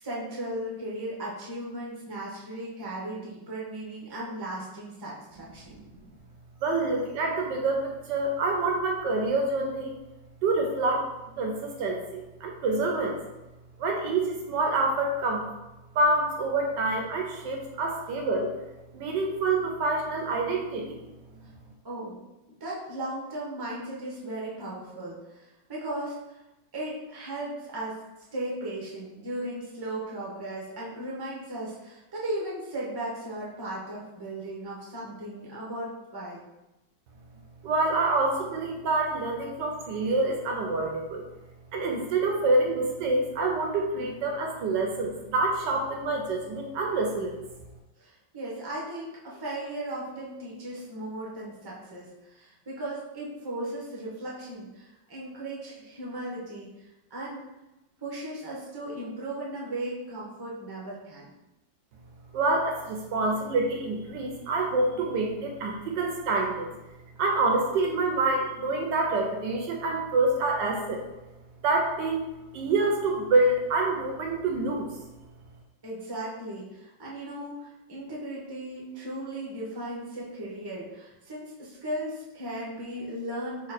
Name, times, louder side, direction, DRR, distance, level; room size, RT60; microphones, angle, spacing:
voice 1, 0.0-5.8 21.8-22.2 22.6-26.4 26.7-28.0 28.3-36.4 48.0-57.4 58.0-61.3 75.8-83.7, right 1 dB, 20° right, -5 dB, 0.7 m, -36 dB
voice 2, 6.6-9.9 10.4-11.1 11.4-13.2 13.8-15.5 15.9-18.5 18.9-21.0 37.6-41.3 41.7-47.4 62.3-66.7 67.2-71.0 71.6-72.3 72.5-74.9, right 2 dB, 75° right, 2 dB, 1.3 m, -27 dB
4.0 x 2.9 x 4.1 m, 1.0 s
omnidirectional pair, 2.1 m